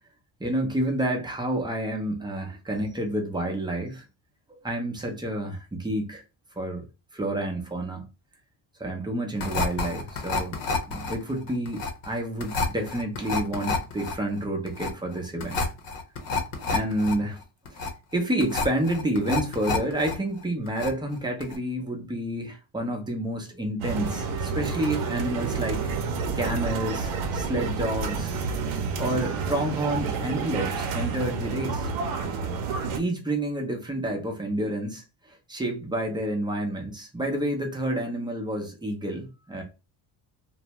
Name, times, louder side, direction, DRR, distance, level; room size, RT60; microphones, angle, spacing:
voice 1, 0.4-4.0 4.6-6.2 6.6-6.8 7.1-8.1 8.8-10.6 10.9-15.6 16.7-17.4 18.1-25.9 26.4-28.3 29.0-31.9 32.9-39.6, right 1 dB, 10° right, 0.6 m, -29 dB
sound 1, 9.4-20.1 20.4-21.1 21.4-21.6, left 3 dB, 65° left, 0.8 m, -29 dB
sound 2, 23.8-33.0, right 5 dB, 85° right, 0.7 m, -29 dB
2.5 x 2.1 x 2.9 m
cardioid pair, 115°, 48 cm